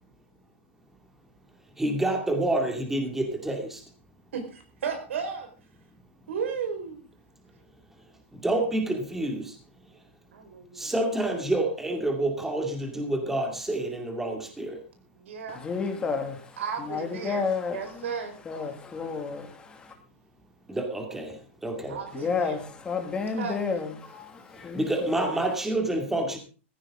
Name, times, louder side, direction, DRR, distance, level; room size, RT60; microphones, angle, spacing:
voice 1, 1.8-3.8 8.3-9.5 10.7-14.8 20.7-22.0 24.7-26.4, right 1 dB, 5° right, 2.4 m, -28 dB
voice 2, 4.3-5.5 6.3-7.0 10.3-10.9 15.2-15.6 16.6-18.4 21.9-22.6 23.4-23.6, right 6 dB, 85° right, 4.8 m, -34 dB
voice 3, 15.5-18.1 18.5-19.9 22.1-25.4, left 5 dB, 15° left, 2.3 m, -32 dB
15.5 x 15.0 x 3.8 m
supercardioid pair, 160°, 7 cm